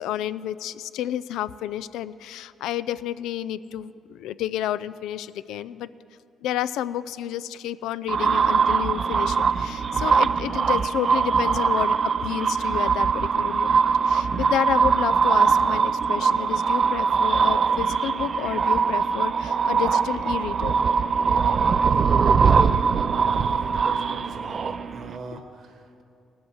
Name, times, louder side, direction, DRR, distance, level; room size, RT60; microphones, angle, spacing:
voice 1, 0.0-5.9 6.4-12.0 12.2-20.8 25.3-25.4, left 11 dB, 90° left, 15 dB, 0.3 m, -30 dB
sound 1, 8.1-25.1, right 5 dB, 45° right, 0.4 m, -22 dB
voice 2, 21.9-23.0 23.3-26.0, right 3 dB, 70° right, 6 dB, 1.5 m, -39 dB
18.0 x 7.9 x 6.4 m, 2.5 s
cardioid pair, 90°, 0 cm